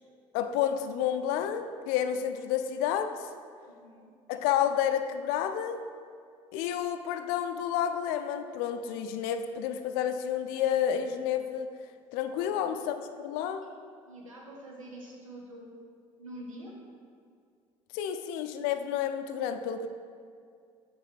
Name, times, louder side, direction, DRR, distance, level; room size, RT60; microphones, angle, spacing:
voice 1, 0.3-3.1 4.3-5.8 6.5-11.7 12.1-13.7 17.9-19.9, left 9 dB, 65° left, 8 dB, 0.4 m, -30 dB
voice 2, 3.7-4.1 12.3-12.5 14.1-15.7 16.2-16.7, right 1 dB, 90° right, -2 dB, 0.9 m, -45 dB
5.9 x 4.7 x 4.0 m, 2.2 s
figure-of-eight pair, 55°, 17 cm